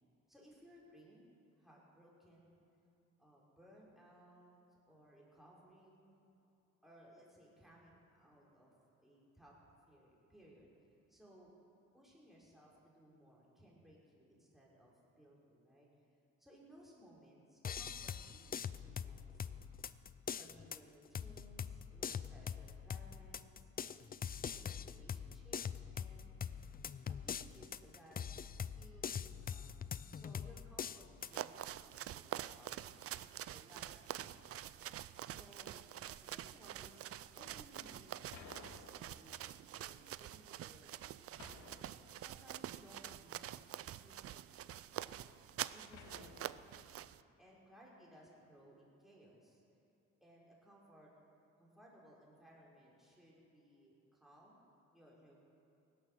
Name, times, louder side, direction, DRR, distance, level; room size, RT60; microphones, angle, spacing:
voice 1, 0.3-1.3 1.6-2.6 3.2-4.6 4.9-6.3 6.8-8.7 9.0-9.6 9.9-10.7 11.1-11.5 11.9-15.9 16.4-19.8 20.4-24.0 24.4-25.6 25.9-26.3 27.2-28.2 28.7-33.3 33.5-34.6 35.3-35.9 36.2-38.1 38.4-41.1 42.2-43.6 43.9-45.3 45.7-47.1 47.4-49.6 50.2-51.1 51.6-55.4, equal, ahead, -5 dB, 4.3 m, -62 dB
sound 1, 17.6-31.4, left 7 dB, 30° left, 0.4 m, -44 dB
sound 2, 31.2-47.2, right 12 dB, 50° right, 0.4 m, -47 dB
sound 3, 38.3-39.5 41.4-42.4 45.9-47.0, left 4 dB, 70° left, 1.9 m, -56 dB
17.0 x 11.0 x 6.5 m, 2.9 s
cardioid pair, 90°, 30 cm